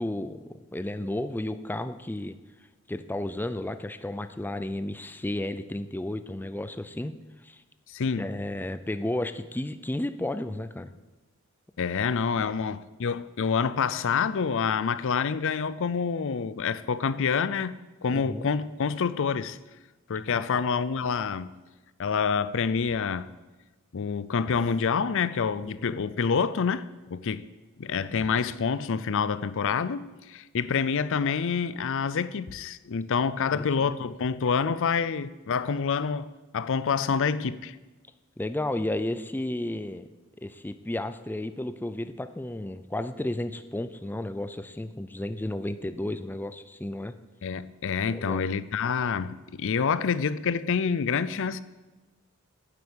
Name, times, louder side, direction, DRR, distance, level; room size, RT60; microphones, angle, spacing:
voice 1, 0.0-2.4 2.9-7.1 7.4-7.6 8.2-10.9 12.4-12.5 18.1-18.5 20.3-20.6 25.6-26.0 33.5-33.9 38.4-40.1 40.4-47.1 48.1-48.4, left 1 dB, 10° left, 0.5 m, -33 dB
voice 2, 7.9-8.3 11.8-17.7 18.0-19.6 20.1-21.5 22.0-23.3 23.9-27.5 27.8-37.8 47.4-51.6, left 6 dB, 65° left, 0.5 m, -27 dB
9.8 x 8.0 x 8.8 m
head